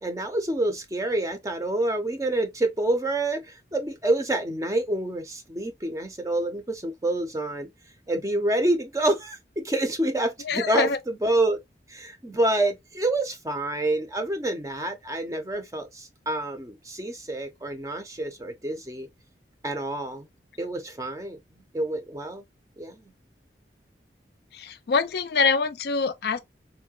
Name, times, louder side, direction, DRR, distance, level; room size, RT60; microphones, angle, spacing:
voice 1, 0.0-7.7 8.1-11.6 11.9-19.1 19.6-20.3 20.6-22.4 22.8-23.0, right 1 dB, 20° right, 0.5 m, -27 dB
voice 2, 10.4-11.0 24.5-26.4, left 4 dB, 65° left, 0.4 m, -24 dB
3.6 x 2.1 x 2.3 m
head